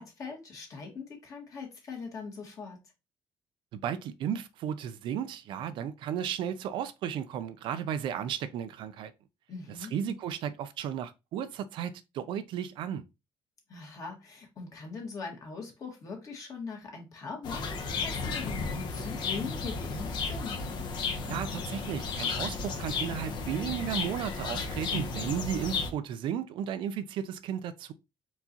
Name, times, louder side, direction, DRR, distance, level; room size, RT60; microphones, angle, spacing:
voice 1, 0.0-2.8 9.5-9.9 13.7-20.6, left 4 dB, 40° left, 1.7 m, -41 dB
voice 2, 3.7-9.1 9.8-13.0 21.3-27.9, right 9 dB, 65° right, 0.5 m, -34 dB
sound 1, 17.4-25.9, left 4 dB, 55° left, 1.0 m, -34 dB
4.5 x 4.0 x 2.8 m
cardioid pair, 155°, 9 cm